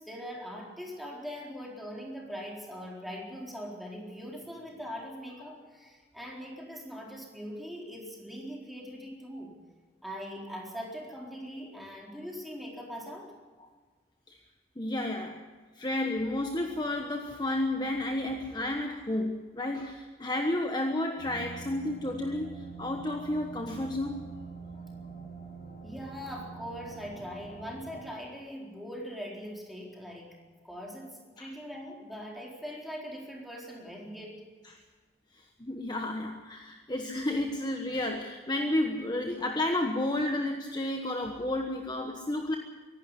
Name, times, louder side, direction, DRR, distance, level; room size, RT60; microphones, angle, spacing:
voice 1, 0.0-9.6 10.0-13.3 25.8-30.4 30.6-34.4, equal, ahead, -2 dB, 4.1 m, -41 dB
voice 2, 14.8-15.5 15.8-24.2 31.4-31.5 34.6-34.8 35.4-42.6, left 1 dB, 25° left, 4 dB, 1.2 m, -31 dB
sound 1, 21.2-28.1, right 4 dB, 50° left, 4.0 m, -45 dB
24.0 x 12.0 x 9.7 m, 1.4 s
head